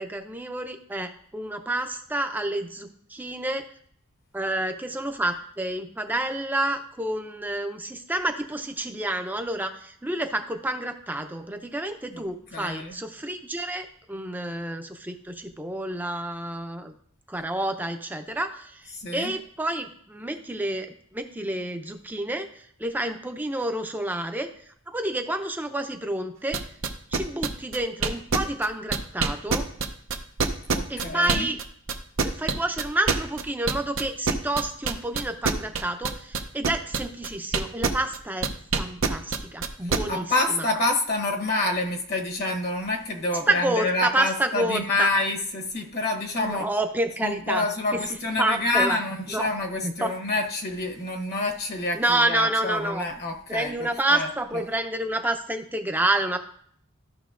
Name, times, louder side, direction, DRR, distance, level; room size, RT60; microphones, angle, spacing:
voice 1, 0.0-3.6 4.3-16.9 17.3-20.9 21.1-24.5 24.9-26.6 27.1-29.7 30.9-31.6 32.2-38.5 38.7-40.3 40.6-40.7 43.5-45.1 46.4-47.7 47.9-48.0 48.4-49.0 49.3-49.5 49.8-50.1 51.9-53.1 53.5-56.4, right 1 dB, 10° right, 6 dB, 0.6 m, -29 dB
voice 2, 12.5-13.0 19.0-19.3 30.7-31.5 39.8-46.7 47.2-54.3, left 2 dB, 50° left, 2 dB, 1.0 m, -27 dB
sound 1, 26.5-31.6 31.9-38.2 38.4-40.0, right 5 dB, 65° right, 0.7 m, -24 dB
13.5 x 6.1 x 2.5 m, 0.64 s
head